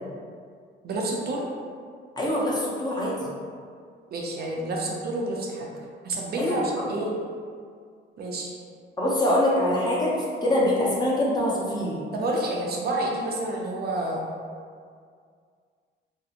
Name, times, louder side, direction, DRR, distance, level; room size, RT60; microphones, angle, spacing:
voice 1, 0.8-1.4 4.1-5.7 6.0-7.1 8.2-8.5 12.1-14.2, right 2 dB, 55° right, -2 dB, 0.4 m, -29 dB
voice 2, 2.2-3.3 6.4-6.8 9.0-10.1 10.4-12.0, left 1 dB, 20° left, -6 dB, 0.6 m, -24 dB
2.7 x 2.0 x 2.5 m, 2.1 s
cardioid pair, 90°, 20 cm